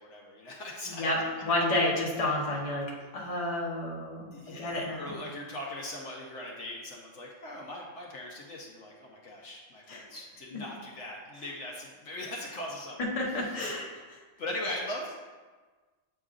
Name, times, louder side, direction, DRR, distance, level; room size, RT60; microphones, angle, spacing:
voice 1, 0.0-1.0 3.0-3.1 4.3-13.0 13.5-13.6 14.4-15.1, left 1 dB, 65° left, -2 dB, 1.1 m, -40 dB
voice 2, 0.9-4.3 4.5-5.2 9.9-10.0 10.5-10.6 13.0-14.2, left 1 dB, 30° left, -4 dB, 1.1 m, -30 dB
7.8 x 5.1 x 2.5 m, 1.4 s
omnidirectional pair, 1.3 m